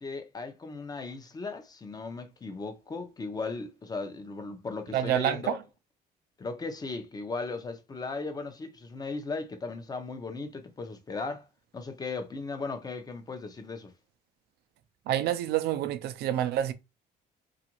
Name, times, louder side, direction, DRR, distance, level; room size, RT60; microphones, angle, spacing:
voice 1, 0.0-5.6 6.4-11.5 11.7-13.9, left 3 dB, 25° left, 0.6 m, -37 dB
voice 2, 4.9-5.6 15.1-16.7, right 11 dB, 70° right, 0.4 m, -28 dB
2.8 x 2.4 x 2.8 m
cardioid pair, 110°, 17 cm